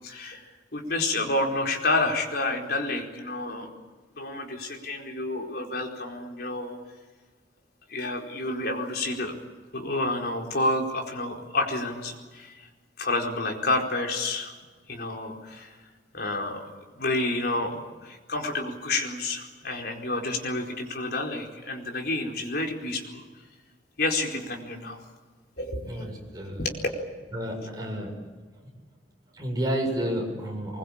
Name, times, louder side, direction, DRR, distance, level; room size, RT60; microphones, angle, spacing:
voice 1, 0.0-3.7 4.2-6.8 7.9-9.3 9.7-12.7 13.0-14.5 14.9-15.8 16.1-23.2 24.0-25.0 25.6-26.1 26.6-26.8, left 2 dB, 60° left, 1 dB, 4.6 m, -29 dB
voice 2, 25.8-26.6 27.3-28.1 29.4-30.8, right 1 dB, 20° right, 0 dB, 7.4 m, -30 dB
24.0 x 21.5 x 8.8 m, 1.4 s
head